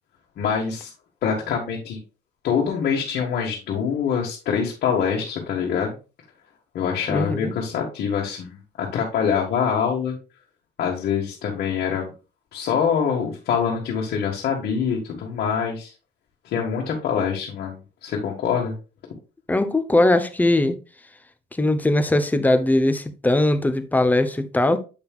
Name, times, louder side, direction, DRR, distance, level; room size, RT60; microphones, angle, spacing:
voice 1, 0.4-0.9 1.2-2.0 2.4-6.0 6.7-10.2 10.8-12.1 12.5-15.9 16.4-18.7, left 7 dB, 65° left, 1.6 m, -25 dB
voice 2, 7.1-7.5 19.5-20.8 21.6-24.8, left 1 dB, 10° left, 0.8 m, -20 dB
8.0 x 5.5 x 2.4 m
cardioid pair, 110°, 17 cm